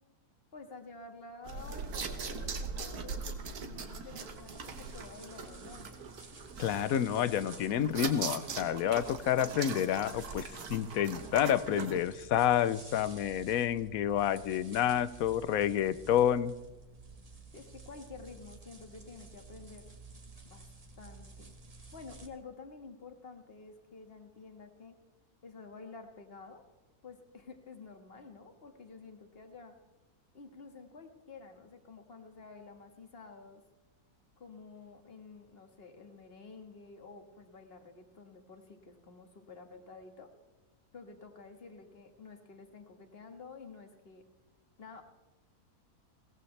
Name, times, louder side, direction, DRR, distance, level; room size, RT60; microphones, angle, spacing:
voice 1, 0.5-6.0 17.5-19.9 20.5-20.7 21.0-21.5 21.9-25.0 25.4-26.6 27.0-29.8 30.3-33.6 34.4-40.3 40.9-44.2 44.8-45.0, left 4 dB, 40° left, 5 dB, 1.8 m, -50 dB
sound 1, 1.4-12.0, right 5 dB, 80° right, 1.7 m, -41 dB
sound 2, 4.2-22.3, right 3 dB, 25° right, 1.4 m, -52 dB
voice 2, 6.6-16.5, left 10 dB, 70° left, 16 dB, 1.0 m, -29 dB
21.5 x 17.0 x 3.3 m, 1.1 s
omnidirectional pair, 1.6 m